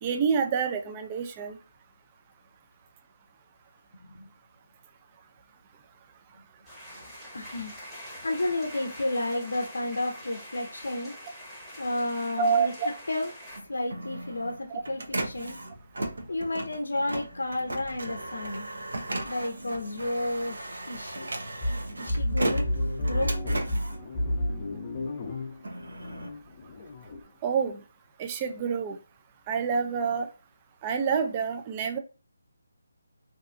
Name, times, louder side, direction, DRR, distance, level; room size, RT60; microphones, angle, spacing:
voice 1, 0.0-1.6 12.4-12.9 27.4-27.8 28.2-29.0 29.5-30.3 30.8-32.0, right 6 dB, 25° right, 6 dB, 0.3 m, -27 dB
sound 1, 6.6-13.6, equal, ahead, 0.9 m, -44 dB
voice 2, 7.3-7.7 8.2-11.1 11.8-12.7 13.1-13.3 13.7-15.6 16.3-18.7 19.2-21.3 22.0-22.7 23.1-23.3, left 2 dB, 80° left, 2 dB, 0.5 m, -31 dB
Printer, 13.5-24.9 25.4-27.2, right 1 dB, 75° right, 0.6 m, -36 dB
sound 2, 21.6-27.2, left 1 dB, 30° left, 0.5 m, -31 dB
2.6 x 2.3 x 2.5 m, 0.33 s
figure-of-eight pair, 160°, 0 cm